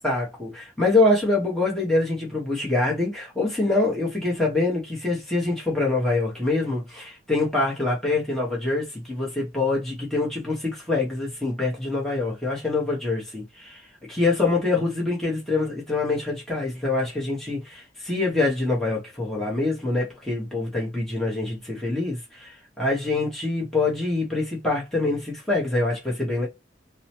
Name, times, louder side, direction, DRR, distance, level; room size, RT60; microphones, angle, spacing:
voice 1, 0.0-13.8 14.1-26.5, left 2 dB, ahead, 1.0 m, -25 dB
2.8 x 2.1 x 2.8 m
head